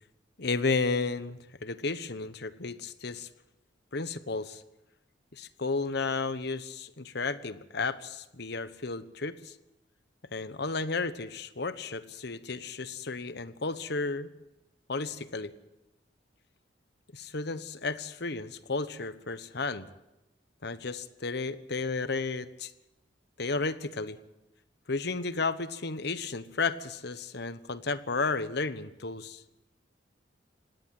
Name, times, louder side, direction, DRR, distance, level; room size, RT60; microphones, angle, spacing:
voice 1, 0.4-3.3 3.9-4.6 5.3-9.5 10.3-14.3 14.9-15.5 17.1-19.9 20.6-22.7 23.4-24.2 24.9-29.4, left 4 dB, 60° left, 13 dB, 1.1 m, -33 dB
20.0 x 17.0 x 7.8 m, 0.93 s
head